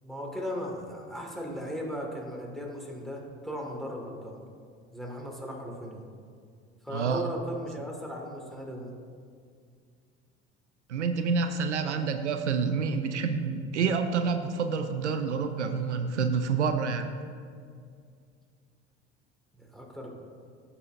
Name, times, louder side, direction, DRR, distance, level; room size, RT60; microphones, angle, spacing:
voice 1, 0.0-4.4 4.9-6.1 6.8-8.9 11.8-12.0 19.6-20.1, equal, ahead, -1 dB, 2.0 m, -37 dB
voice 2, 6.9-7.2 10.9-17.1, right 5 dB, 90° right, 8 dB, 0.6 m, -28 dB
15.0 x 5.5 x 2.7 m, 2.2 s
hypercardioid pair, 70°, 34 cm